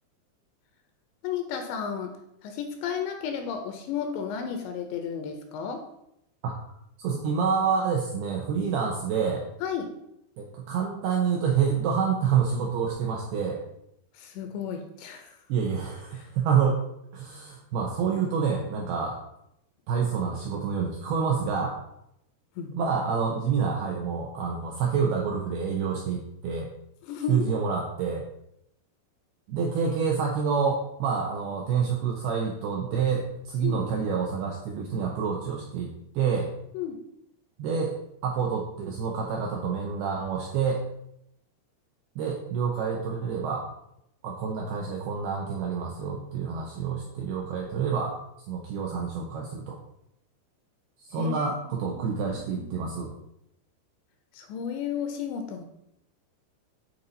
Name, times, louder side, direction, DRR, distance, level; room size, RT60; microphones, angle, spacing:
voice 1, 1.2-2.1 2.4-5.8 9.6-9.9 14.1-15.4 16.1-16.3 22.6-22.8 27.0-27.5 33.6-33.9 36.7-37.0 51.1-52.2 52.5-52.7 54.3-55.6, left 7 dB, 80° left, 5 dB, 2.7 m, -33 dB
voice 2, 7.0-9.5 10.4-13.6 15.5-16.8 17.1-19.2 19.9-21.8 22.7-26.7 27.3-28.3 29.5-36.5 37.6-38.0 38.2-40.8 42.2-43.7 44.2-48.2 48.5-49.8 51.1-53.1, right 6 dB, 85° right, 0 dB, 2.3 m, -28 dB
9.8 x 4.2 x 3.9 m, 0.79 s
omnidirectional pair, 5.5 m